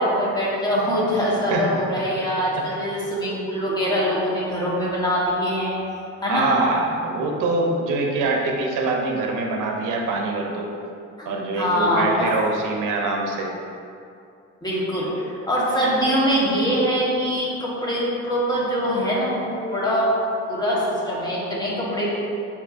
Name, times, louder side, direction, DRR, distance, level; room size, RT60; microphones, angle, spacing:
voice 1, 0.0-5.7 6.2-6.5 11.2-12.3 14.6-20.1 20.5-22.1, equal, 15° left, -6 dB, 1.2 m, -23 dB
voice 2, 1.5-2.2 6.3-10.8 11.3-13.5, right 3 dB, 90° right, 1 dB, 0.7 m, -24 dB
6.5 x 2.9 x 2.5 m, 2.6 s
cardioid pair, 90°, 30 cm